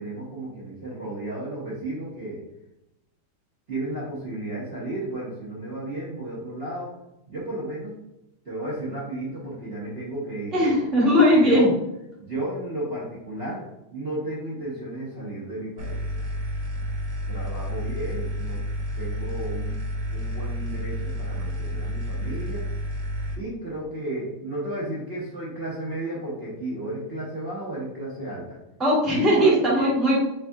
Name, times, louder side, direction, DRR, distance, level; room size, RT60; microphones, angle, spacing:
voice 1, 0.0-2.4 3.7-6.9 7.3-7.9 8.4-10.7 11.0-11.7 12.2-13.6 13.9-16.0 16.8-16.9 17.3-18.6 19.0-19.7 20.1-22.6 23.4-28.5 29.1-29.9, right 1 dB, 40° right, -9 dB, 0.9 m, -33 dB
voice 2, 10.5-11.7 28.8-30.2, equal, ahead, -7 dB, 0.9 m, -19 dB
sound 1, 15.8-23.3, equal, 90° right, 1.4 m, -30 dB
4.0 x 3.5 x 2.3 m, 0.88 s
omnidirectional pair, 2.1 m